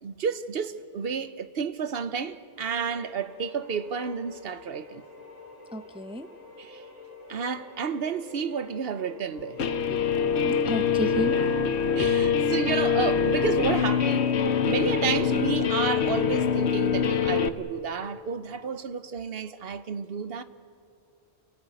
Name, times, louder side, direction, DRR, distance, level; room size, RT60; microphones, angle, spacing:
voice 1, 0.0-5.0 6.6-6.8 7.3-9.6 11.9-20.4, right 6 dB, 60° right, 1.1 m, -31 dB
sound 1, 2.5-17.3, left 3 dB, 35° left, 4.1 m, -47 dB
voice 2, 5.7-6.3 9.9-10.0 10.4-11.5 12.0-12.1, equal, 5° right, 0.6 m, -32 dB
Guitar, 9.6-17.5, left 7 dB, 75° left, 1.1 m, -24 dB
28.5 x 18.5 x 9.1 m
omnidirectional pair, 1.1 m